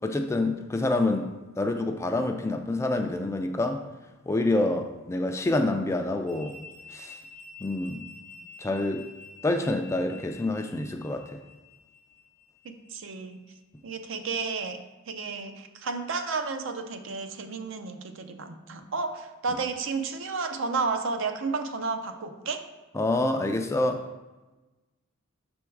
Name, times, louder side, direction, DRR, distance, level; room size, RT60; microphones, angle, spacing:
voice 1, 0.0-1.3 1.6-3.8 4.3-6.6 6.9-7.2 7.6-8.0 8.6-9.1 9.4-11.4 22.9-24.0, left 2 dB, 15° left, 5 dB, 0.3 m, -27 dB
sound 1, 6.3-13.9, left 4 dB, 90° right, 1.0 m, -49 dB
voice 2, 12.6-13.4 13.8-14.8 15.1-22.7, right 4 dB, 60° right, 7 dB, 0.5 m, -32 dB
6.0 x 3.5 x 4.5 m, 1.1 s
head